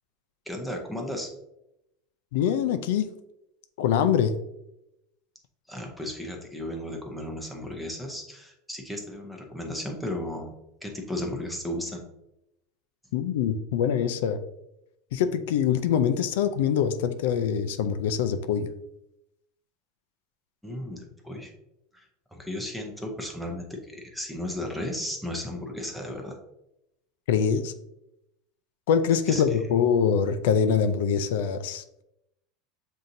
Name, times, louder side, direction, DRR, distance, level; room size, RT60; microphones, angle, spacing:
voice 1, 0.5-1.3 5.7-10.5 10.8-12.0 20.6-21.5 21.9-26.4 29.3-29.4, left 1 dB, ahead, 1 dB, 0.6 m, -35 dB
voice 2, 2.3-3.1 3.8-4.3 13.1-14.4 15.1-18.7 27.3-27.7 28.9-31.8, left 7 dB, 75° left, 10 dB, 0.4 m, -24 dB
7.3 x 2.7 x 2.6 m, 0.86 s
supercardioid pair, 170°, 0 cm